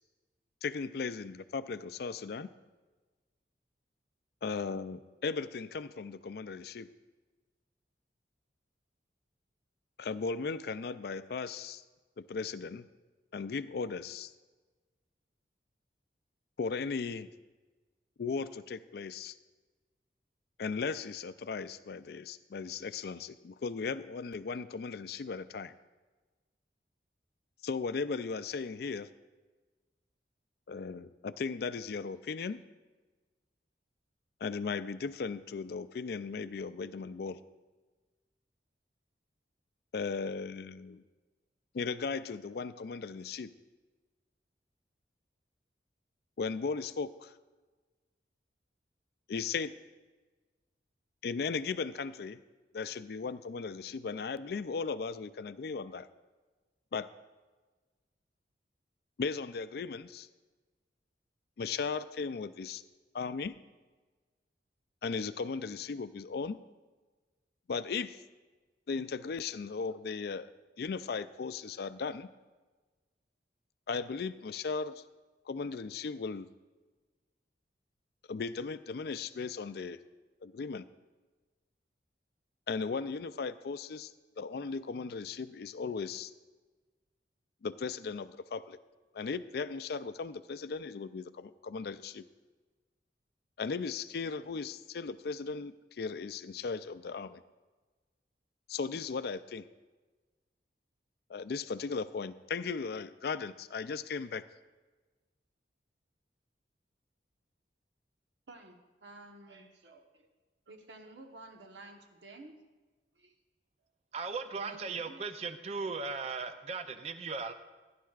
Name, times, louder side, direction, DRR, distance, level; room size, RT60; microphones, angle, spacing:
voice 1, 0.6-2.5 4.4-6.9 10.0-11.8 12.2-12.9 13.3-14.3 16.6-17.3 18.2-19.4 20.6-25.7 27.6-29.1 30.7-32.6 34.4-37.4 39.9-41.0 41.7-43.5 46.4-47.3 49.3-49.7 51.2-52.4 52.7-56.1 56.9-57.1 59.2-60.3 61.6-62.8 63.1-63.6 65.0-66.6 67.7-68.2 68.9-70.5 70.8-72.3 73.9-75.0 75.5-76.5 78.3-80.0 80.4-80.9 82.7-86.3 87.6-88.8 89.1-92.2 93.6-97.4 98.7-99.7 101.3-104.4, left 5 dB, 60° left, 14 dB, 0.4 m, -37 dB
voice 2, 108.5-110.3 110.7-112.6 113.1-113.3 114.5-115.2, right 2 dB, 90° right, 4 dB, 1.1 m, -52 dB
voice 3, 114.1-117.5, right 4 dB, 35° right, 9 dB, 0.5 m, -37 dB
16.0 x 10.0 x 2.4 m, 1.3 s
head